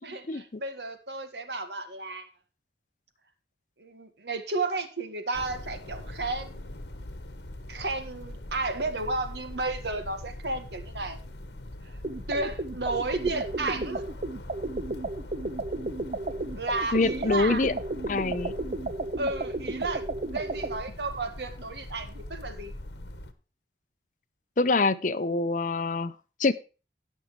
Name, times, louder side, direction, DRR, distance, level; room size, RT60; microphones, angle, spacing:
voice 1, 0.0-2.3 3.8-6.8 7.7-11.2 11.8-11.9 12.3-14.0 16.6-17.6 19.2-22.7, right 3 dB, 70° right, 8 dB, 1.8 m, -33 dB
sound 1, 5.3-23.3, left 1 dB, 75° left, 1.2 m, -42 dB
sound 2, 12.0-20.8, right 2 dB, 45° right, 0.9 m, -33 dB
voice 2, 16.9-17.7 18.1-18.5 24.6-26.1 26.4-26.5, left 3 dB, 45° left, 14 dB, 0.6 m, -25 dB
17.5 x 6.4 x 3.2 m, 0.33 s
head